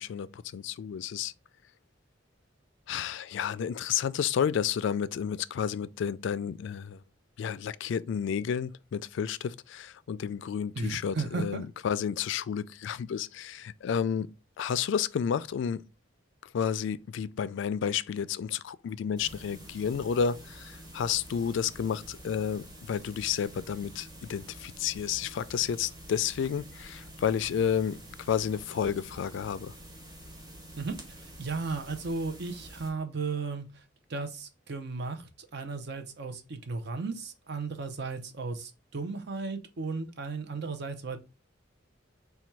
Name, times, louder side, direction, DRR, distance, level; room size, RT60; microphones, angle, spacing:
voice 1, 0.0-1.3 2.9-7.0 7.4-14.3 14.6-15.8 16.5-28.0 28.3-29.7, left 7 dB, 65° left, 0.3 m, -31 dB
voice 2, 10.7-11.6 30.8-33.8 34.1-41.2, right 4 dB, 60° right, 0.6 m, -35 dB
sound 1, 19.2-32.9, equal, 20° right, 1.1 m, -48 dB
4.2 x 2.3 x 4.5 m
head